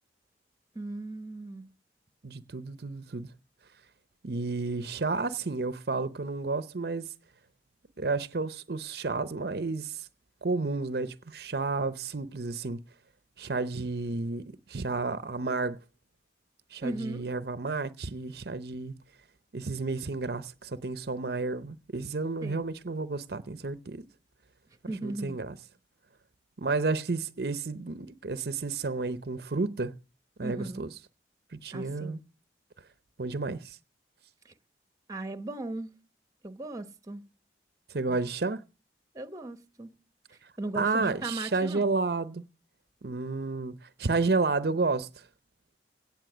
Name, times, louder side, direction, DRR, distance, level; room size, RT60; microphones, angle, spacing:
voice 1, 0.7-1.7 16.8-17.2 22.4-22.6 24.9-25.4 30.4-30.8 31.7-32.2 34.4-34.5 35.1-35.9 36.4-37.2 38.1-38.2 38.5-38.6 39.1-39.9 40.6-41.9, right 2 dB, 20° right, 1.0 m, -37 dB
voice 2, 2.2-3.3 4.2-7.1 8.0-10.1 10.4-12.8 13.4-15.8 16.7-18.9 19.5-24.1 25.0-25.5 26.6-29.9 30.4-30.9 31.5-32.2 33.2-33.8 37.9-38.6 40.8-42.4 43.0-45.2, right 3 dB, 60° right, 0.7 m, -31 dB
17.0 x 7.2 x 6.1 m
head